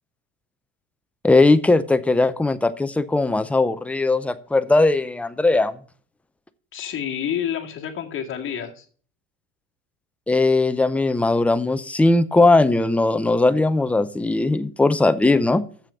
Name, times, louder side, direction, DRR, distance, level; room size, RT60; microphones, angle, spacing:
voice 1, 1.2-5.8 10.3-15.6, left 2 dB, 5° left, 10 dB, 0.5 m, -19 dB
voice 2, 6.7-8.9, left 9 dB, 35° left, 1 dB, 2.0 m, -28 dB
7.4 x 7.0 x 6.3 m, 0.43 s
supercardioid pair, 120°, 37 cm